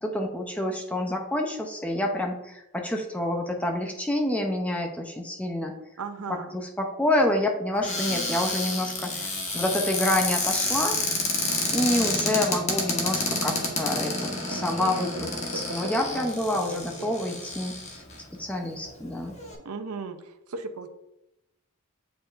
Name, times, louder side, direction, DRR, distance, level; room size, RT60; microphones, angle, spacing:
voice 1, 0.0-5.8 6.5-11.0 11.7-18.0 18.3-19.4, left 1 dB, 5° left, 2 dB, 0.6 m, -28 dB
voice 2, 6.0-6.5 13.2-13.9 14.5-16.3 16.7-17.2 19.6-20.9, right 3 dB, 80° right, 9 dB, 0.6 m, -37 dB
Cupboard open or close, 7.8-18.2 18.9-19.0 19.2-19.5, left 2 dB, 30° left, 1.0 m, -29 dB
7.9 x 4.6 x 2.5 m, 0.88 s
head